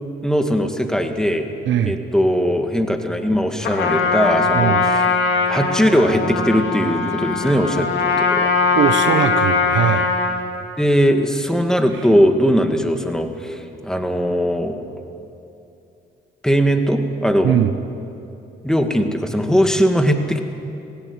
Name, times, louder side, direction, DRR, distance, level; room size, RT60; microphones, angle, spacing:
voice 1, 0.2-1.5 1.8-5.2 5.5-8.5 10.8-14.8 16.4-17.6 18.6-20.4, equal, 5° left, 5 dB, 2.1 m, -19 dB
voice 2, 1.7-2.0 4.5-4.8 8.7-10.1 17.4-17.7, right 10 dB, 70° right, 10 dB, 1.1 m, -19 dB
Trumpet, 3.6-10.4, left 4 dB, 70° left, 2.8 m, -20 dB
18.5 x 17.0 x 9.7 m, 2.7 s
cardioid pair, 90°, 20 cm